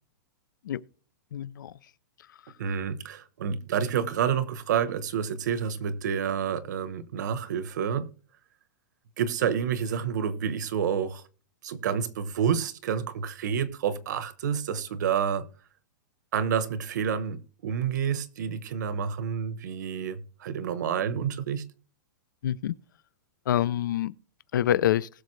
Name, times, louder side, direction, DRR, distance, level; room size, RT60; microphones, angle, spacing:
voice 1, 1.3-1.7 22.4-22.7 23.5-24.1 24.5-25.1, left 11 dB, 70° left, 0.5 m, -26 dB
voice 2, 2.6-8.1 9.2-11.2 11.6-15.5 16.3-21.7, right 7 dB, 60° right, 1.0 m, -29 dB
20.0 x 6.7 x 3.2 m
supercardioid pair, 175°, 11 cm